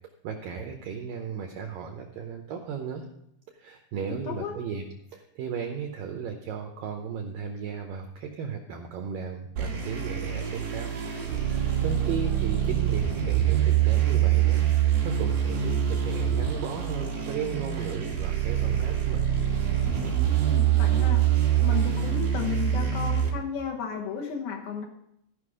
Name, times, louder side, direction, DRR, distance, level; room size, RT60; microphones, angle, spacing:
voice 1, 0.2-3.1 3.6-4.8 5.1-10.9 11.3-19.3, right 6 dB, 85° right, 4 dB, 2.0 m, -35 dB
voice 2, 4.0-4.5 20.5-21.2 21.6-24.9, left 7 dB, 85° left, 0 dB, 1.6 m, -34 dB
sound 1, 9.6-23.3, right 10 dB, 50° right, 3.7 m, -25 dB
15.5 x 5.4 x 4.9 m, 0.74 s
omnidirectional pair, 5.1 m